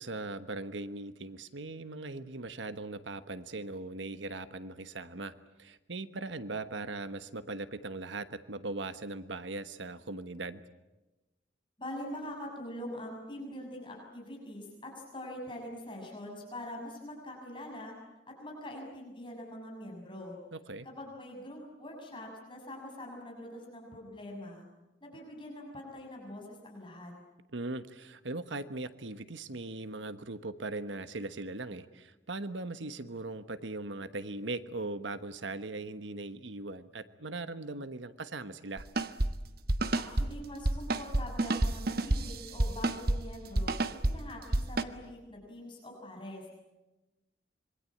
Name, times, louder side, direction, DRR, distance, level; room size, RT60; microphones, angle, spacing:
voice 1, 0.0-10.6 20.5-20.9 27.5-38.9, right 2 dB, 80° right, 11 dB, 1.2 m, -39 dB
voice 2, 11.8-17.9 18.3-20.4 20.8-24.6 25.0-27.1 39.9-46.6, left 1 dB, 25° left, -1 dB, 6.7 m, -44 dB
sound 1, 38.8-39.3 39.7-40.3 40.6-43.2 43.5-44.1 44.5-44.8, right 2 dB, 55° right, 1.2 m, -28 dB
26.5 x 23.5 x 8.7 m, 1.1 s
head